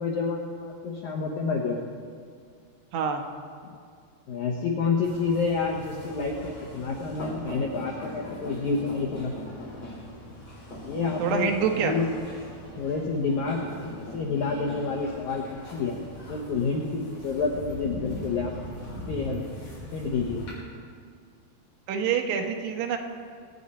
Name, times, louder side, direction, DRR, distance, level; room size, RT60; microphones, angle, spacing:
voice 1, 0.0-1.8 4.3-9.3 10.8-11.5 11.8-12.0 12.8-16.0 16.3-18.5 19.1-19.4 19.9-20.4, left 4 dB, 75° left, -1 dB, 1.8 m, -29 dB
voice 2, 2.9-3.2 11.2-11.9 21.9-23.0, right 7 dB, 75° right, 3 dB, 3.1 m, -26 dB
sound 1, 5.0-20.5, equal, 40° left, 5.5 m, -40 dB
23.0 x 9.3 x 4.2 m, 2.1 s
omnidirectional pair, 4.9 m